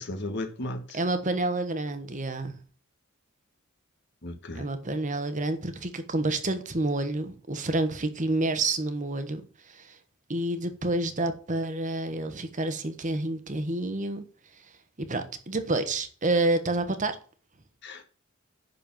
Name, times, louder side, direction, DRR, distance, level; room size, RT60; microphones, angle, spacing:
voice 1, 0.0-1.0 4.2-4.6 17.8-18.0, left 1 dB, 55° left, 1.6 m, -35 dB
voice 2, 0.9-2.5 4.5-10.0 10.3-14.2 15.0-17.2, right 2 dB, 35° right, 1.2 m, -29 dB
10.5 x 4.5 x 7.3 m
head